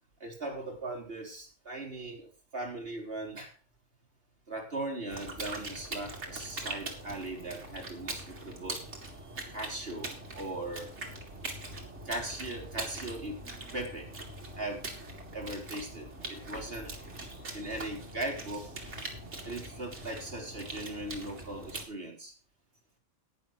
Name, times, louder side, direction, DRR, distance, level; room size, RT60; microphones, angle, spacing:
voice 1, 0.2-3.5 4.5-8.9 9.5-10.9 12.1-13.4 13.7-14.1 14.5-14.9 15.3-18.9 19.4-22.3, right 2 dB, 50° right, 1 dB, 3.6 m, -39 dB
sound 1, 5.1-21.9, right 2 dB, 70° right, 2.6 m, -42 dB
11.5 x 9.8 x 4.6 m, 0.35 s
omnidirectional pair, 1.2 m